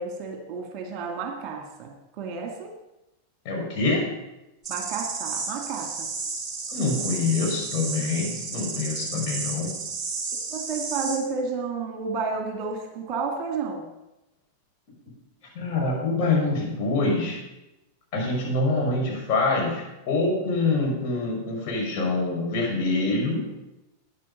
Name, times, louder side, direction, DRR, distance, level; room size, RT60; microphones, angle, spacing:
voice 1, 0.0-2.7 4.7-6.1 10.5-13.9, right 4 dB, 40° right, 3 dB, 2.2 m, -31 dB
voice 2, 3.4-4.1 6.7-9.7 15.5-17.4 18.1-23.5, left 3 dB, 40° left, -2 dB, 5.9 m, -25 dB
sound 1, 4.6-11.2, right 4 dB, 20° right, 3.8 m, -32 dB
13.5 x 9.7 x 5.6 m, 0.94 s
figure-of-eight pair, 90°, 0 cm